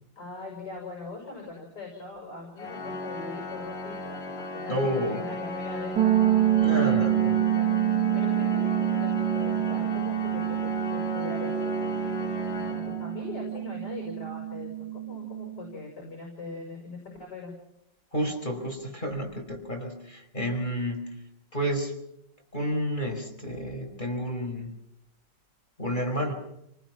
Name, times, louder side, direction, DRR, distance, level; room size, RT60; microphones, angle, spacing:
voice 1, 0.2-7.7 8.1-17.5, left 3 dB, 65° left, 0 dB, 7.2 m, -41 dB
Organ, 2.6-13.5, left 1 dB, 80° left, 3.6 m, -34 dB
voice 2, 4.7-5.2 6.6-7.3 18.1-21.1 21.5-21.9 22.5-24.7 25.8-26.3, equal, 25° left, 1 dB, 5.2 m, -30 dB
sound 1, 6.0-15.7, right 13 dB, 60° right, 2.2 m, -27 dB
29.5 x 20.5 x 6.1 m, 0.81 s
omnidirectional pair, 2.0 m